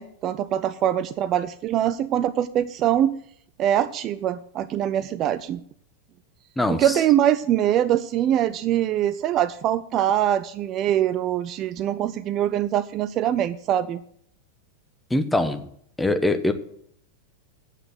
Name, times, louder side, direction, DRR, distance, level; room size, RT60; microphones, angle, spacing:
voice 1, 0.0-3.1 3.6-5.6 6.7-14.0, right 11 dB, 35° right, 13 dB, 0.5 m, -23 dB
voice 2, 6.6-7.0 15.1-15.7 16.0-16.5, left 2 dB, 5° left, 9 dB, 1.0 m, -23 dB
9.1 x 7.8 x 7.8 m, 0.66 s
figure-of-eight pair, 90°, 0 cm